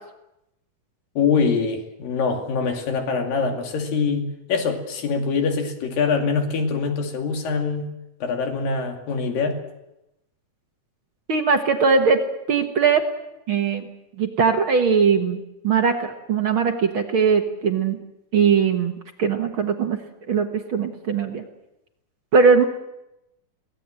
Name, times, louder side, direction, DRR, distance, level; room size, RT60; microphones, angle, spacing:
voice 1, 1.2-7.9 8.2-9.6, left 5 dB, 70° left, 3 dB, 4.1 m, -24 dB
voice 2, 11.3-12.2 12.5-13.1 13.5-13.9 14.2-18.0 18.3-18.9 19.2-20.0 20.3-21.4 22.3-22.6, right 5 dB, 60° right, 5 dB, 1.3 m, -20 dB
23.0 x 18.0 x 7.7 m, 0.90 s
omnidirectional pair, 4.2 m